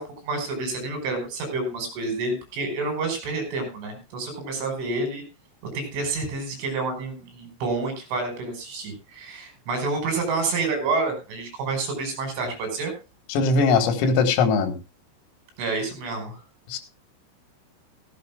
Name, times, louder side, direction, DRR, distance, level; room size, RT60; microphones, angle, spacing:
voice 1, 0.0-5.2 5.7-12.9 15.6-16.4, right 3 dB, 70° right, 6 dB, 7.5 m, -29 dB
voice 2, 13.3-14.7 16.7-16.8, left 4 dB, 90° left, 8 dB, 4.7 m, -20 dB
16.0 x 15.5 x 2.4 m, 0.28 s
omnidirectional pair, 5.9 m